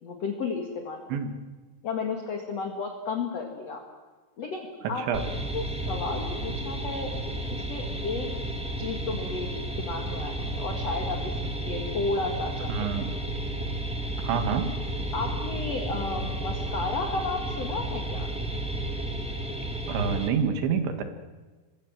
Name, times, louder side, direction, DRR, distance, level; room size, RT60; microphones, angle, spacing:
voice 1, 0.0-1.0 1.8-3.8 4.4-5.0 5.5-7.1 7.5-8.3 8.8-9.5 9.8-12.8 15.1-18.3, left 4 dB, 45° left, 3 dB, 2.7 m, -33 dB
sound 1, 5.1-20.3, right 1 dB, 5° right, 1.3 m, -32 dB
voice 2, 12.7-13.1 14.2-14.8 19.9-21.0, right 6 dB, 85° right, 8 dB, 4.3 m, -27 dB
28.0 x 23.0 x 7.6 m, 1.3 s
omnidirectional pair, 5.1 m